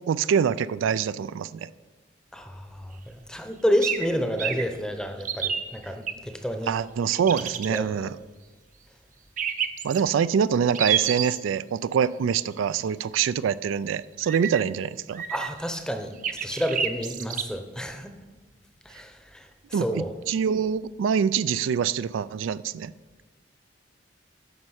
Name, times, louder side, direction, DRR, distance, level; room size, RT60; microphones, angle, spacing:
voice 1, 0.1-1.7 6.7-8.2 9.8-15.2 19.7-22.9, right 7 dB, 85° right, 17 dB, 0.3 m, -25 dB
voice 2, 2.3-6.7 7.4-7.9 15.3-16.1 16.4-18.1 18.8-20.1, equal, 5° left, 6 dB, 0.7 m, -30 dB
sound 1, 3.8-4.1 4.4-4.6 5.2-6.1 7.1-7.8 9.4-10.0 10.7-11.4 14.2-14.6 15.1-15.7 16.2-17.4, right 8 dB, 40° right, 0.7 m, -28 dB
9.7 x 6.2 x 6.4 m, 1.3 s
head